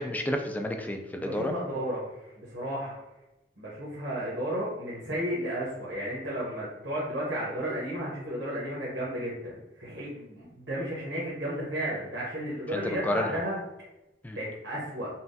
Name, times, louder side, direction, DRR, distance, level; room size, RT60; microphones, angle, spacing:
voice 1, 0.0-1.5 12.7-13.3 14.2-14.4, left 1 dB, 10° left, 4 dB, 0.3 m, -30 dB
voice 2, 1.2-3.0 3.6-13.6 14.3-15.1, equal, 75° right, -7 dB, 1.0 m, -33 dB
5.5 x 2.2 x 2.7 m, 0.96 s
head